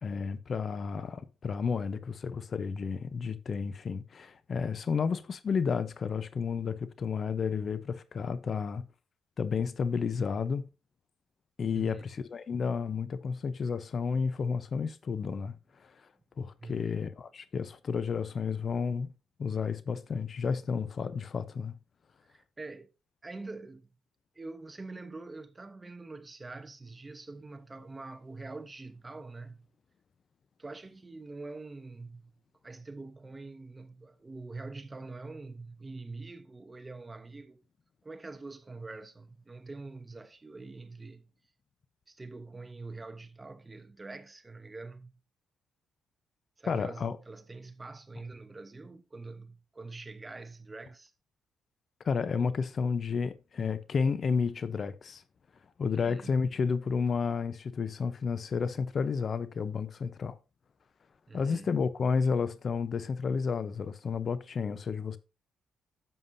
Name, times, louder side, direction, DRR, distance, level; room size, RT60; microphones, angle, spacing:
voice 1, 0.0-8.9 9.4-10.6 11.6-15.5 15.8-15.9 16.4-19.1 19.4-21.8 46.7-47.2 52.0-55.2 55.8-60.4 61.3-65.2, left 5 dB, 45° left, 0.7 m, -31 dB
voice 2, 11.7-12.1 16.6-16.9 22.3-22.9 23.2-23.9 24.3-29.7 30.6-32.3 32.6-37.6 38.0-41.3 42.1-45.2 46.6-51.1 55.9-56.4 61.3-61.8, right 3 dB, 20° right, 1.0 m, -45 dB
11.0 x 7.3 x 2.7 m
cardioid pair, 90°, 0 cm